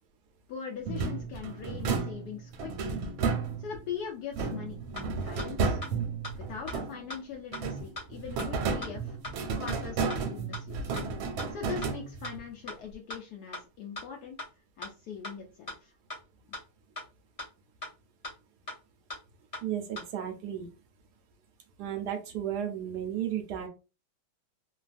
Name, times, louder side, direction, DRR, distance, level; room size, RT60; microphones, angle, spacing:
voice 1, 0.5-2.9 3.6-5.8 6.3-9.2 9.6-11.0 11.5-14.4 14.8-15.9, left 7 dB, 75° left, 1 dB, 0.9 m, -41 dB
sound 1, 0.9-3.9 4.3-7.2 7.5-12.5, right 5 dB, 90° right, 1.4 m, -33 dB
sound 2, 5.0-5.1 5.4-5.5 5.8-5.9 6.2-6.3 6.7-6.8 7.1-7.2 7.5-7.6 8.0-8.1 8.4-8.5 8.8-8.9 9.2-9.3 9.7-9.8 10.1-10.2 10.5-10.6 11.0-11.1 11.4-11.5 11.8-11.9 12.2-12.3 12.7-12.8 13.1-13.2 13.5-13.6 14.0-14.1 14.4-14.5 14.8-14.9 15.2-15.3 15.7-15.8 16.1-16.2 16.5-16.6 17.0-17.1 17.4-17.5 17.8-17.9 18.2-18.3 18.7-18.8 19.1-19.2 19.5-19.6 20.0-20.1, left 2 dB, 30° left, 0.6 m, -38 dB
voice 2, 19.6-20.7 21.8-23.7, right 10 dB, 75° right, 5 dB, 1.0 m, -34 dB
3.2 x 2.3 x 2.4 m, 0.30 s
omnidirectional pair, 2.2 m